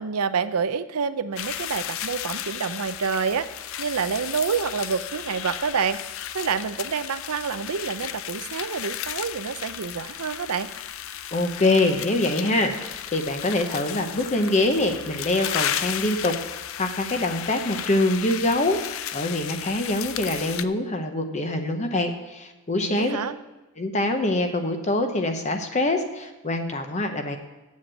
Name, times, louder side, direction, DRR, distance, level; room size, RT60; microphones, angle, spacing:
voice 1, 0.0-3.5 3.8-6.0 6.3-10.7 22.8-23.4, right 6 dB, 90° right, 12 dB, 0.6 m, -28 dB
sound 1, 1.4-20.6, left 10 dB, 65° left, 0.4 m, -34 dB
voice 2, 11.3-18.8 19.1-23.2 23.8-27.4, left 2 dB, 30° left, 6 dB, 0.8 m, -24 dB
7.8 x 7.3 x 7.5 m, 1.1 s
head